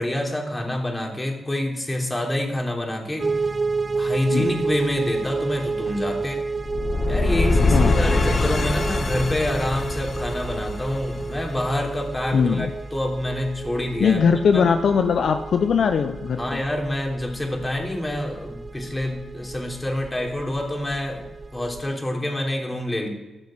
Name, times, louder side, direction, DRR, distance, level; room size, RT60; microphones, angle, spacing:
voice 1, 0.0-3.3 3.9-6.4 7.1-14.2 14.5-14.7 16.4-21.3 21.5-23.1, left 1 dB, 20° left, 1 dB, 3.3 m, -27 dB
sound 1, 3.2-21.9, right 4 dB, 40° right, 1.1 m, -31 dB
voice 2, 4.3-4.6 7.6-8.0 12.3-12.7 14.0-16.6, left 6 dB, 65° left, 8 dB, 0.6 m, -20 dB
sound 2, 6.6-11.7, left 2 dB, 50° left, 1.7 m, -23 dB
13.5 x 6.3 x 7.4 m, 1.1 s
supercardioid pair, 45°, 0 cm